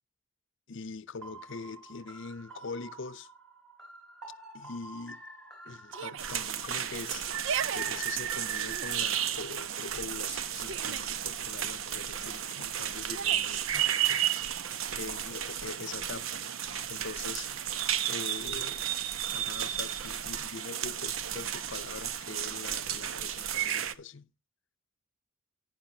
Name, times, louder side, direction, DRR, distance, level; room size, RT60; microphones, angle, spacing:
voice 1, 0.7-3.3 4.5-5.2 5.6-16.4 16.9-17.5 18.1-18.8 19.3-24.3, left 4 dB, 65° left, 0.7 m, -43 dB
sound 1, 1.2-8.1, right 2 dB, ahead, 4.5 m, -49 dB
Yell, 5.9-6.4 7.2-7.8 8.6-9.1 10.3-11.2 13.0-13.6, right 7 dB, 65° right, 0.5 m, -37 dB
sound 2, 6.2-23.9, right 10 dB, 85° right, 0.8 m, -33 dB
10.5 x 10.5 x 2.8 m
head